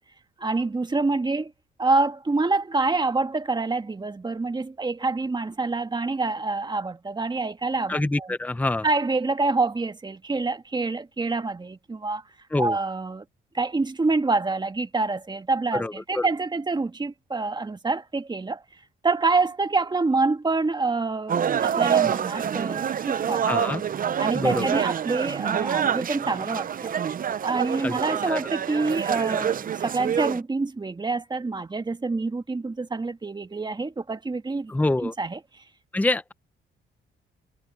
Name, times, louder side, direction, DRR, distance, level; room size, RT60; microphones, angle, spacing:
voice 1, 0.4-1.5 1.8-8.3 8.8-12.2 12.6-13.2 13.5-18.6 19.0-23.4 24.2-26.9 27.4-34.8 35.0-35.4, right 3 dB, 20° right, 1.6 m, -26 dB
voice 2, 7.9-8.8 12.5-12.8 15.7-16.3 23.5-23.8 24.3-24.8 27.8-28.0 28.3-28.4 34.7-35.1 35.9-36.3, left 2 dB, 10° left, 0.7 m, -26 dB
sound 1, 21.3-30.4, right 8 dB, 45° right, 0.7 m, -26 dB
cardioid pair, 90°, 20 cm